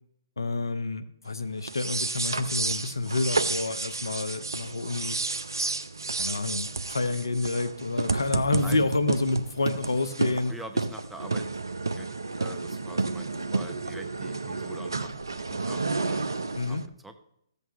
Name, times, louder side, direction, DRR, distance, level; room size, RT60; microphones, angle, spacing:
voice 1, 0.4-5.2 6.1-10.5 16.5-16.8, left 3 dB, 75° left, 11 dB, 0.8 m, -29 dB
sound 1, 1.6-16.9, right 3 dB, 75° right, 0.6 m, -31 dB
voice 2, 10.5-11.5 11.9-12.1 12.4-16.2 16.7-17.1, right 1 dB, 5° right, 6 dB, 0.7 m, -45 dB
14.0 x 8.1 x 3.1 m, 0.77 s
figure-of-eight pair, 125°, 2 cm